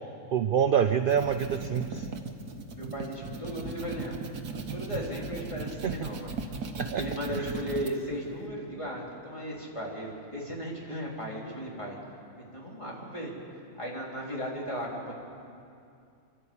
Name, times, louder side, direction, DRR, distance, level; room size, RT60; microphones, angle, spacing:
voice 1, 0.3-2.1 5.8-6.1 6.8-7.0 7.3-7.4, right 8 dB, 60° right, 9 dB, 0.5 m, -26 dB
sound 1, 0.9-7.9, right 4 dB, 85° right, 1.7 m, -37 dB
voice 2, 2.7-4.2 4.5-6.3 7.0-12.0 12.5-13.3 13.8-15.1, equal, 20° left, -3 dB, 3.7 m, -36 dB
28.5 x 12.0 x 8.6 m, 2.5 s
omnidirectional pair, 1.6 m